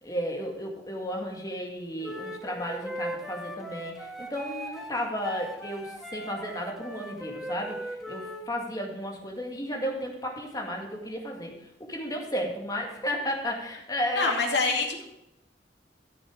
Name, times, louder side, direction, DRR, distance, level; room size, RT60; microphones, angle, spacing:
voice 1, 0.0-11.5 11.9-14.4, equal, 20° left, 1 dB, 2.0 m, -33 dB
Wind instrument woodwind instrument, 2.0-8.5, right 1 dB, ahead, 1.3 m, -39 dB
voice 2, 14.1-15.0, left 3 dB, 70° left, 1 dB, 2.4 m, -25 dB
13.5 x 7.2 x 5.0 m, 0.86 s
head